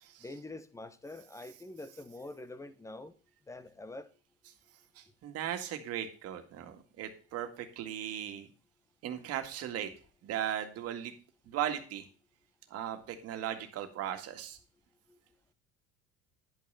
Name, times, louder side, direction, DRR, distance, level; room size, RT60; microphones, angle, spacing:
voice 1, 0.2-3.1 3.5-4.1 15.1-15.2, left 2 dB, 10° left, 1.0 m, -45 dB
voice 2, 5.0-8.5 9.0-9.9 10.2-11.1 11.4-12.1 12.7-14.6, right 10 dB, 55° right, 2.0 m, -37 dB
10.5 x 5.7 x 5.6 m
cardioid pair, 120°, 29 cm